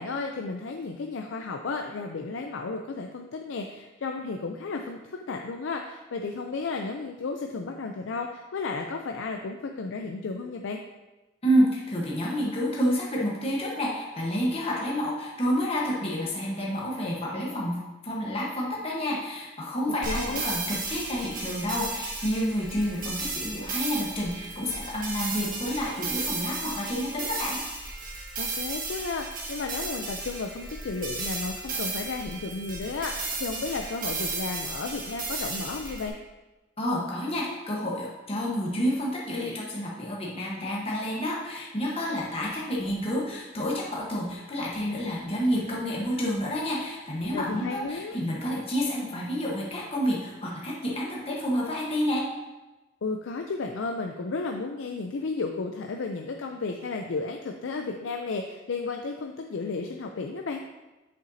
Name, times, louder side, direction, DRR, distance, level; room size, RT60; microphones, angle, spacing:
voice 1, 0.0-10.8 20.1-20.4 28.4-36.2 47.3-48.2 53.0-60.6, left 4 dB, 80° left, 3 dB, 0.5 m, -33 dB
voice 2, 11.4-27.6 36.8-52.3, equal, 30° left, -4 dB, 1.1 m, -29 dB
sound 1, 20.0-36.1, right 3 dB, 45° right, 1.5 m, -34 dB
8.0 x 6.7 x 2.7 m, 1.1 s
head